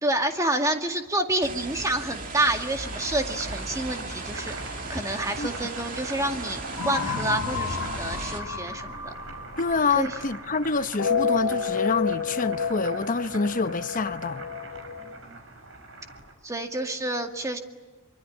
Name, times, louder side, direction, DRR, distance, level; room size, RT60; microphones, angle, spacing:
voice 1, 0.0-9.0 10.0-10.1 15.0-15.4 16.4-17.6, right 1 dB, 15° right, 2.1 m, -28 dB
sound 1, 1.4-8.4, right 3 dB, 40° right, 2.5 m, -37 dB
Boiling, 2.6-16.3, right 2 dB, 60° right, 6.0 m, -41 dB
sound 2, 6.8-10.4 10.8-15.2, left 6 dB, 85° left, 1.5 m, -30 dB
voice 2, 9.6-14.5, left 4 dB, 35° left, 0.8 m, -27 dB
24.5 x 24.0 x 10.0 m
head